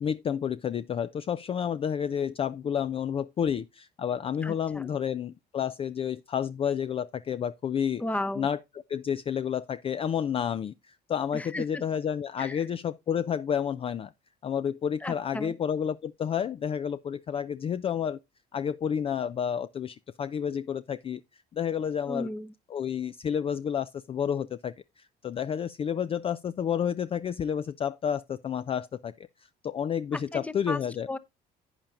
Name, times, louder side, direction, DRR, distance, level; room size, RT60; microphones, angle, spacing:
voice 1, 0.0-8.0 8.4-8.6 8.9-14.1 14.4-18.2 18.5-22.3 22.7-29.1 29.6-31.1, left 8 dB, 35° left, 0.4 m, -30 dB
voice 2, 4.4-4.9 8.0-8.5 11.3-11.8 12.4-12.7 15.0-15.5 22.1-22.5 30.1-30.8 31.1-31.2, left 1 dB, 10° left, 0.7 m, -34 dB
11.0 x 8.8 x 2.4 m
cardioid pair, 110°, 17 cm